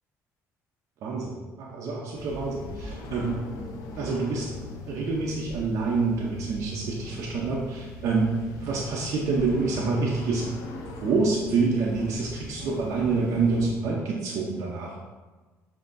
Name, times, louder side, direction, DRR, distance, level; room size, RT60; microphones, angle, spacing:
voice 1, 1.0-3.7 4.0-4.5 4.9-10.5 11.0-15.0, right 4 dB, 60° right, -3 dB, 0.6 m, -27 dB
sound 1, 2.1-13.7, left 2 dB, 80° left, 0.5 m, -41 dB
7.4 x 2.7 x 2.6 m, 1.3 s
cardioid pair, 135°, 6 cm